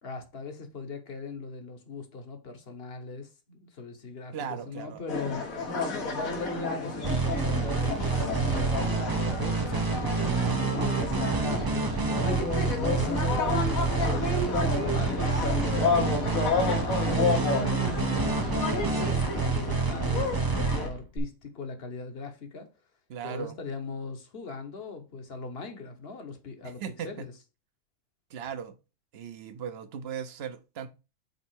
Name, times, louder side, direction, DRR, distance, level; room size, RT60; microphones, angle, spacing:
voice 1, 0.0-10.3 10.7-16.5 17.0-22.7 23.2-27.3, left 4 dB, 50° left, 1.1 m, -40 dB
voice 2, 4.3-5.0 23.1-23.6 26.6-27.3 28.3-28.7 29.1-30.9, right 8 dB, 55° right, 0.8 m, -37 dB
sound 1, 5.1-20.9, left 3 dB, 85° left, 1.7 m, -31 dB
sound 2, 7.0-21.2, right 4 dB, 35° right, 0.3 m, -28 dB
5.4 x 4.1 x 4.4 m
omnidirectional pair, 1.4 m